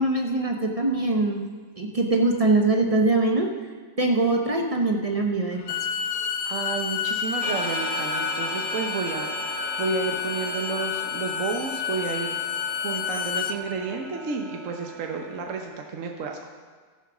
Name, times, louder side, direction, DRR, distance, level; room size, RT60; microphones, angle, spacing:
voice 1, 0.0-1.5 1.8-3.5 4.0-5.6, right 2 dB, 30° right, 2 dB, 0.7 m, -22 dB
Bowed string instrument, 5.5-13.6, left 7 dB, 80° left, 1.3 m, -30 dB
voice 2, 6.5-12.5 12.8-16.5, right 4 dB, 60° right, 2 dB, 1.2 m, -31 dB
sound 1, 7.4-15.7, right 1 dB, 85° right, 1.6 m, -36 dB
14.0 x 7.3 x 6.1 m, 1.5 s
omnidirectional pair, 1.6 m